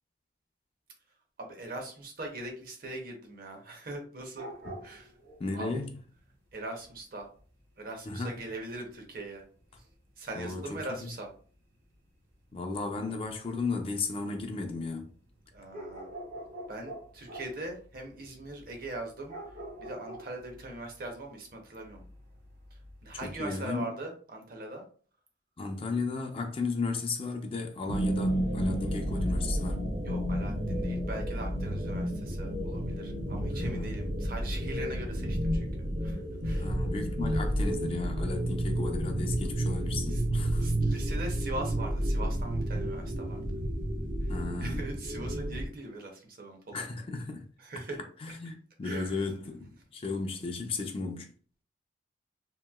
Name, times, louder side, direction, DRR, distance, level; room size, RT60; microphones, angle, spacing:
voice 1, 1.4-4.5 4.8-5.1 5.5-5.8 6.5-7.3 7.8-9.4 10.2-11.3 15.5-16.1 16.7-19.3 19.8-22.0 23.0-24.8 30.0-35.7 36.0-36.7 39.4-39.5 40.1-40.2 40.6-43.4 44.6-46.9 47.6-48.0 48.8-49.2, right 2 dB, 50° right, 0.7 m, -41 dB
sound 1, 4.3-11.5 11.7-23.5, right 1 dB, 70° right, 1.4 m, -47 dB
voice 2, 5.4-6.0 8.1-8.4 10.3-10.6 11.0-11.1 12.5-15.1 23.2-23.9 25.6-29.8 33.4-33.9 36.5-40.7 44.3-44.8 46.7-47.5 48.2-51.3, left 3 dB, 30° left, 0.4 m, -35 dB
sound 2, 27.9-45.7, equal, 85° right, 0.7 m, -31 dB
2.9 x 2.7 x 2.2 m
head